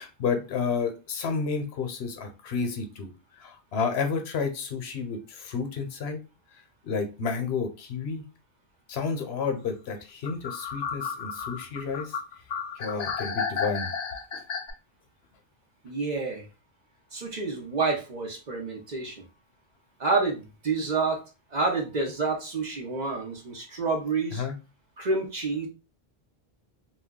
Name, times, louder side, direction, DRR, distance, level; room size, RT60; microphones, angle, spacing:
voice 1, 0.0-3.1 3.4-6.2 6.8-8.2 8.9-12.2 12.8-13.9 14.3-14.4 24.3-24.5, left 5 dB, 75° left, 6 dB, 0.9 m, -31 dB
sound 1, 10.2-14.7, left 6 dB, 55° left, 0.5 m, -32 dB
voice 2, 15.8-16.5 17.1-19.2 20.0-21.2 21.5-24.4 25.0-25.7, right 3 dB, 50° right, 1 dB, 0.7 m, -28 dB
2.3 x 2.2 x 3.5 m, 0.30 s
omnidirectional pair, 1.1 m